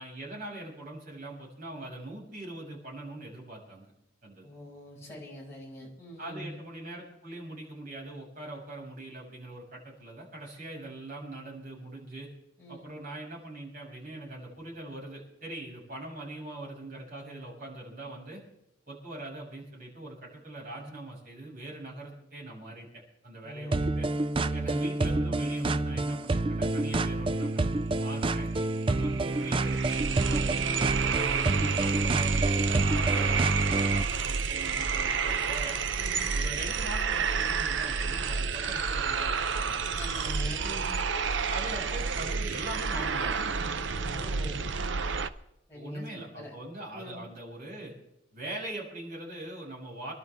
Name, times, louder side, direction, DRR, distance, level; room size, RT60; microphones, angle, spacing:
voice 1, 0.0-3.9 4.2-4.5 6.2-12.3 12.7-18.4 18.9-22.9 23.2-24.1 24.5-28.5 28.9-35.8 36.3-39.9 40.6-40.8 41.5-43.4 45.7-47.9 48.3-50.1, right 2 dB, 45° right, -3 dB, 6.5 m, -42 dB
voice 2, 4.4-6.6 12.6-12.8 23.4-23.9 24.4-24.8 36.0-36.2 39.9-41.0 43.9-44.6 45.7-46.5 46.9-47.2, equal, 15° left, -6 dB, 6.5 m, -43 dB
sound 1, 23.7-34.0, right 2 dB, 25° right, 0.4 m, -28 dB
sound 2, 28.3-28.4 28.6-45.3, right 5 dB, 60° right, 0.7 m, -30 dB
26.5 x 12.0 x 3.6 m, 0.82 s
head